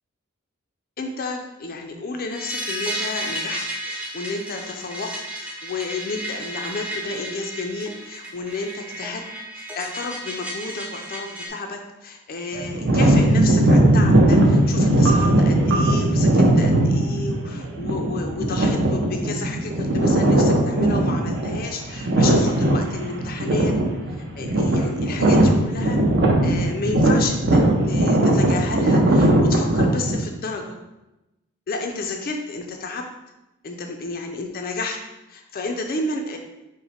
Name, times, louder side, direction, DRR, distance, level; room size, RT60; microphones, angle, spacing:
voice 1, 1.0-9.2 9.5-23.7 24.1-26.0 26.4-30.8 31.7-33.0 33.6-35.0 35.3-36.4, left 3 dB, 40° left, 4 dB, 0.4 m, -31 dB
sound 1, 2.3-11.5, right 1 dB, 5° right, 0.6 m, -33 dB
sound 2, 12.5-30.2, right 1 dB, 50° right, 0.7 m, -18 dB
5.6 x 2.1 x 4.2 m, 0.97 s
head